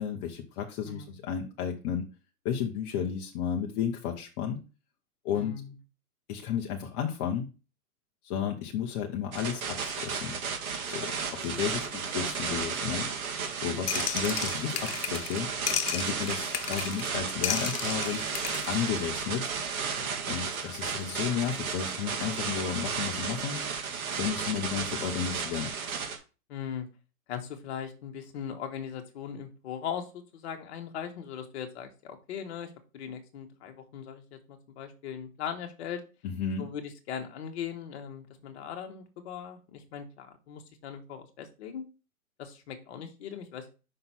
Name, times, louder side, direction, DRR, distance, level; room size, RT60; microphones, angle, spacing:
voice 1, 0.0-2.1 2.4-4.6 5.2-5.5 6.3-7.5 8.2-10.4 10.9-13.1 13.6-15.5 15.9-18.2 18.7-19.5 20.3-23.6 24.2-25.7 36.2-36.7, left 8 dB, 25° left, 2 dB, 0.8 m, -33 dB
voice 2, 0.8-1.2 5.3-5.7 20.0-20.1 26.5-26.9 27.3-36.0 36.6-41.8 42.4-43.7, left 8 dB, 45° left, 5 dB, 1.5 m, -39 dB
sound 1, 9.3-26.2, right 6 dB, 65° right, 1.9 m, -33 dB
sound 2, 13.9-15.4 15.7-17.1 17.4-18.8, left 9 dB, 85° left, 0.9 m, -33 dB
5.6 x 3.8 x 5.9 m, 0.32 s
hypercardioid pair, 140°, 45 cm